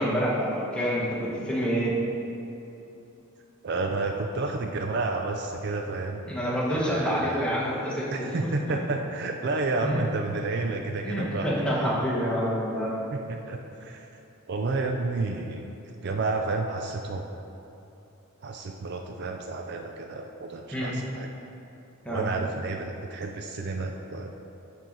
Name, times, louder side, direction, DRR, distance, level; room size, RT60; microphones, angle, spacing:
voice 1, 0.0-1.9 6.2-8.3 8.7-8.8 9.8-10.0 11.0-12.9 20.7-20.9 22.0-22.2, equal, 5° left, -6 dB, 1.2 m, -27 dB
voice 2, 3.6-6.2 6.7-7.5 8.1-12.1 13.1-14.1 14.5-17.3 18.4-21.3 22.1-24.4, right 3 dB, 50° right, 3 dB, 0.4 m, -31 dB
10.0 x 4.6 x 3.9 m, 2.9 s
head